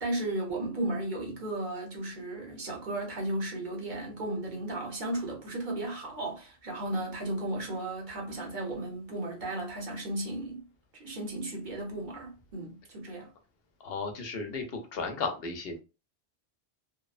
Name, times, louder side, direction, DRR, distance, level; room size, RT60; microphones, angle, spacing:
voice 1, 0.0-10.7 10.9-13.3, right 1 dB, 50° right, 0.9 m, -35 dB
voice 2, 13.8-15.8, left 4 dB, 70° left, 0.9 m, -34 dB
2.9 x 2.0 x 2.3 m
omnidirectional pair, 1.1 m